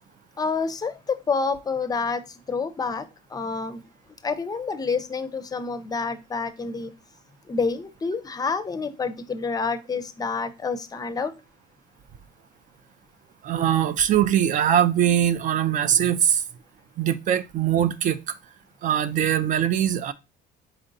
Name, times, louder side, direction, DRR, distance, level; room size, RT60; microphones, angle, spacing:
voice 1, 0.4-2.2 2.5-3.0 3.3-3.8 4.2-6.9 7.5-11.3, left 4 dB, 20° left, 0.5 m, -28 dB
voice 2, 13.4-16.4 17.0-18.4 18.8-20.1, right 10 dB, 50° right, 0.4 m, -22 dB
4.3 x 3.7 x 2.6 m
cardioid pair, 110°, 17 cm